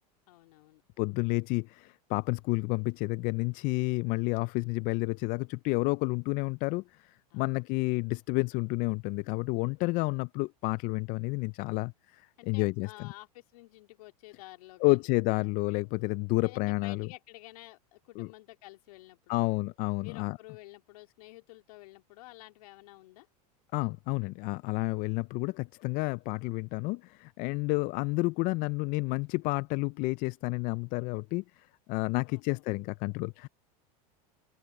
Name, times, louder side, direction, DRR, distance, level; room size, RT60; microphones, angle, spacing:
voice 1, 0.3-0.8 7.3-7.6 12.4-15.1 15.4-15.5 16.4-19.5 20.0-23.3 32.2-32.6, left 19 dB, 70° left, 3.1 m, -51 dB
voice 2, 1.0-12.9 14.8-17.1 18.2-18.3 19.3-20.4 23.7-33.5, left 25 dB, 45° left, 0.4 m, -30 dB
open air
hypercardioid pair, 110°, 19 cm